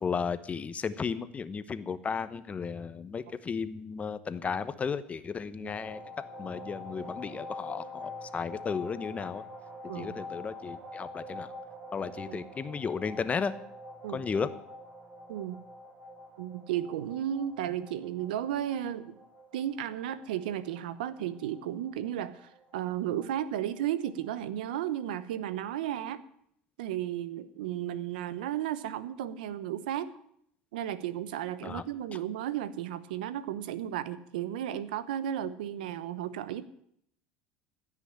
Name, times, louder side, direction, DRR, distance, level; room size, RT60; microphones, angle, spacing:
voice 1, 0.0-6.0 6.4-9.4 9.9-11.5 11.9-13.5 14.1-14.5 31.6-31.8, left 6 dB, 30° left, 13 dB, 1.0 m, -34 dB
sound 1, 5.7-24.2, left 1 dB, 50° right, 6.7 m, -46 dB
voice 2, 9.9-10.2 12.3-12.4 14.0-14.2 15.3-15.6 16.4-19.2 19.5-26.2 26.8-30.1 30.7-36.7, right 11 dB, 85° right, 15 dB, 0.9 m, -34 dB
16.0 x 6.1 x 9.8 m, 0.70 s
supercardioid pair, 90°, 5 cm